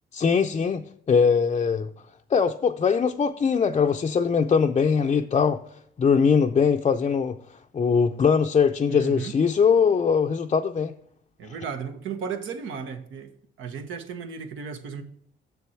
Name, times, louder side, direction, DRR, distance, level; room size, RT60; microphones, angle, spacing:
voice 1, 0.1-0.8 1.1-1.9 2.3-5.6 6.0-7.4 7.7-10.9, left 6 dB, 30° left, 0.5 m, -21 dB
voice 2, 8.9-9.3 11.4-13.3 13.6-15.0, right 6 dB, 80° right, 1.1 m, -34 dB
6.9 x 6.8 x 4.5 m
cardioid pair, 90°, 20 cm